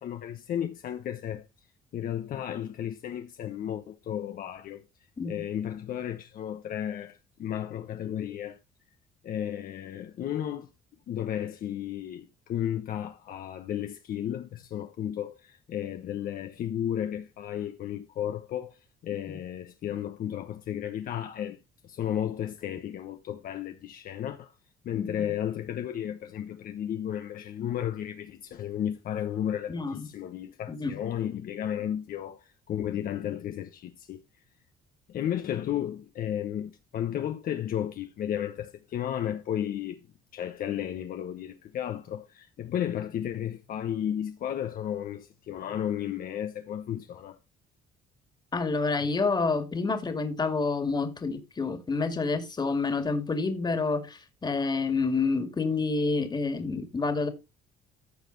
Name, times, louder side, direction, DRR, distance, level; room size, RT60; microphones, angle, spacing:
voice 1, 0.0-1.4 1.9-4.8 5.2-8.6 9.2-10.7 11.1-21.6 21.8-24.5 24.8-34.2 35.1-40.1 40.3-47.4, left 10 dB, 60° left, 1.1 m, -33 dB
voice 2, 24.9-25.3 29.7-30.1 30.7-31.0 48.5-57.3, left 4 dB, 25° left, 2.2 m, -28 dB
14.5 x 4.9 x 4.0 m
cardioid pair, 110°, 17 cm